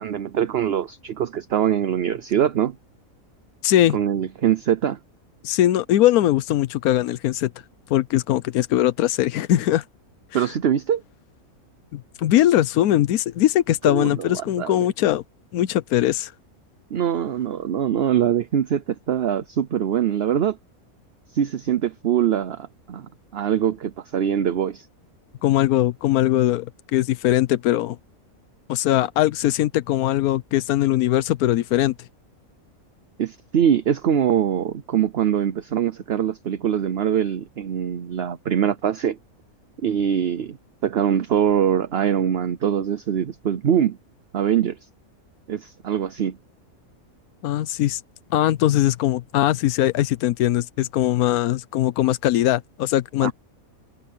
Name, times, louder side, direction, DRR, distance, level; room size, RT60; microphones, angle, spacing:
voice 1, 0.0-2.7 3.9-5.0 10.3-11.0 13.9-14.7 16.9-20.6 21.3-24.9 33.2-39.2 39.8-40.6 40.8-44.0 44.3-44.8 45.5-46.4 53.2-53.3, right 9 dB, 50° right, 0.9 m, -23 dB
voice 2, 3.6-4.0 5.4-7.5 7.9-9.8 10.3-10.4 11.9-15.2 15.5-16.3 25.4-28.0 28.7-31.9 47.4-48.0 48.3-53.3, left 13 dB, 85° left, 1.1 m, -21 dB
omnidirectional pair, 1.5 m